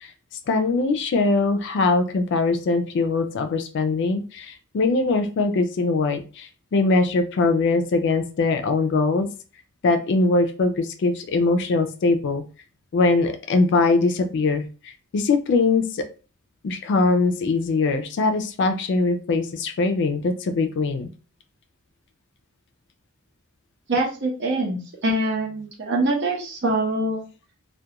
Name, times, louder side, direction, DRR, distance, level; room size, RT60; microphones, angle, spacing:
voice 1, 0.5-9.3 9.8-12.4 12.9-16.0 16.6-21.1, left 3 dB, 60° left, 7 dB, 0.4 m, -22 dB
voice 2, 23.9-27.3, right 1 dB, 60° right, -1 dB, 0.8 m, -24 dB
2.3 x 2.2 x 2.8 m, 0.35 s
head